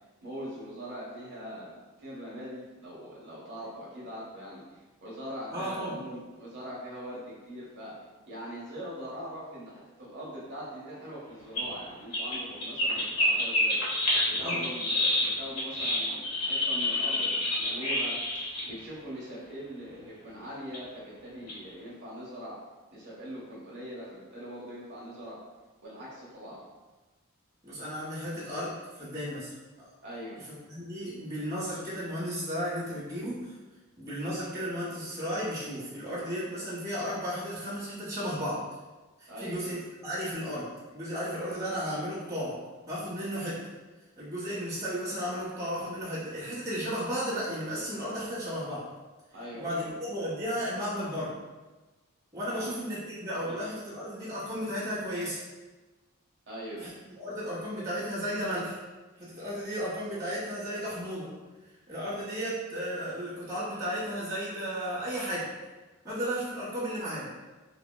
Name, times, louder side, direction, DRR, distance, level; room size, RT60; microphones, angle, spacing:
voice 1, 0.2-8.0 8.3-13.8 14.2-18.2 18.6-22.6 22.9-25.4 25.8-26.6 30.0-30.4 39.3-39.6 49.3-49.9 52.5-52.7 53.4-53.6 56.5-56.9, equal, 55° right, -6 dB, 0.9 m, -42 dB
voice 2, 5.5-6.0 14.4-14.7 27.6-29.5 29.8-29.9 30.7-33.5 34.0-38.6 39.2-42.6 42.9-43.6 44.2-48.9 49.5-51.3 52.3-55.4 56.8-58.8 59.2-61.3 61.9-65.5 66.0-67.3, equal, 15° right, -10 dB, 1.0 m, -34 dB
sound 1, 11.6-11.7 12.1-18.7 20.0-20.1 20.7-20.8 21.4-21.5, left 1 dB, 85° left, 1.0 m, -28 dB
4.0 x 2.2 x 2.2 m, 1.2 s
head